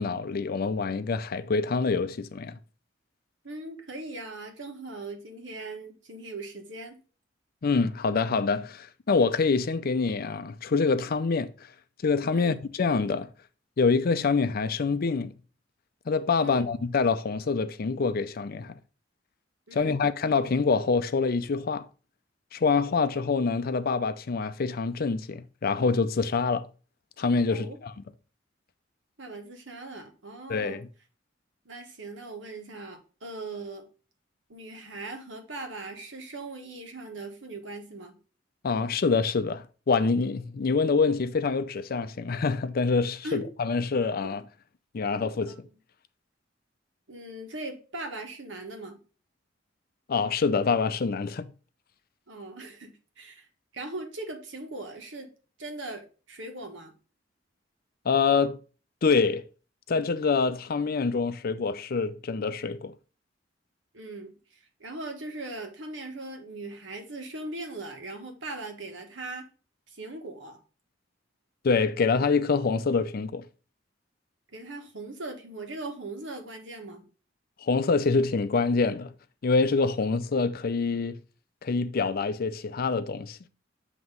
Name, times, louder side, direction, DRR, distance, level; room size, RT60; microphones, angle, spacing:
voice 1, 0.0-2.6 7.6-11.5 12.0-13.3 13.8-15.3 16.1-18.7 19.7-21.9 22.5-26.7 27.2-27.9 30.5-30.9 38.6-44.4 44.9-45.5 50.1-51.5 58.1-58.6 59.0-59.4 59.9-62.9 71.6-73.4 77.6-79.1 79.4-81.2 81.6-83.4, left 4 dB, 50° left, 0.5 m, -26 dB
voice 2, 3.4-7.0 12.3-12.6 16.4-16.7 19.7-20.0 27.5-27.8 29.2-30.8 31.6-33.8 34.5-38.2 43.2-43.5 45.2-45.7 47.1-49.0 52.3-53.5 53.7-55.3 55.6-56.9 63.9-69.5 69.9-70.6 74.5-77.0, right 2 dB, 75° right, 1.4 m, -40 dB
7.8 x 3.0 x 5.3 m
head